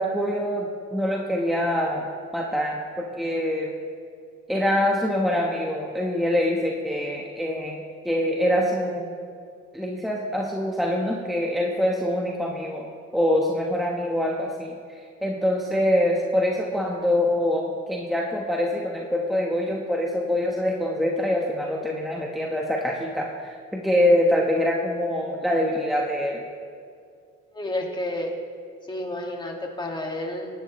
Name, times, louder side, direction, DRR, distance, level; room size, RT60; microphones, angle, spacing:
voice 1, 0.0-2.1 2.3-3.7 4.5-7.8 8.0-9.1 9.7-12.9 13.1-26.4, left 1 dB, ahead, -1 dB, 1.2 m, -24 dB
voice 2, 27.5-28.3 28.9-30.5, left 1 dB, 15° left, 0 dB, 2.1 m, -30 dB
18.0 x 11.5 x 3.2 m, 2.3 s
cardioid pair, 90°, 30 cm